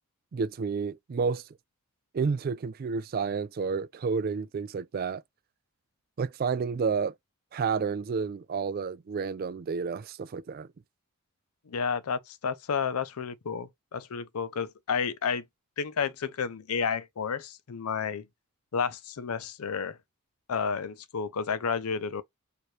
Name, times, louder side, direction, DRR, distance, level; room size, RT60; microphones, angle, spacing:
voice 1, 0.3-1.4 2.1-5.2 6.2-7.1 7.5-10.7, right 5 dB, 40° right, 0.3 m, -30 dB
voice 2, 11.7-15.4 15.8-18.2 18.7-20.0 20.5-22.2, left 6 dB, 75° left, 0.5 m, -31 dB
4.6 x 2.5 x 3.1 m
head